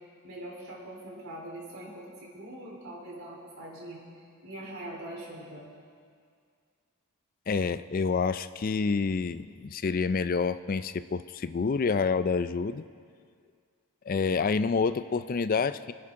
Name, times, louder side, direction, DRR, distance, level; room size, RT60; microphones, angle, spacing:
voice 1, 0.2-2.1 2.3-4.0 4.4-5.7, right 1 dB, 70° right, -4 dB, 3.8 m, -42 dB
voice 2, 7.5-12.8 14.1-15.9, left 5 dB, 40° left, 13 dB, 0.4 m, -28 dB
25.0 x 10.0 x 3.7 m, 2.2 s
head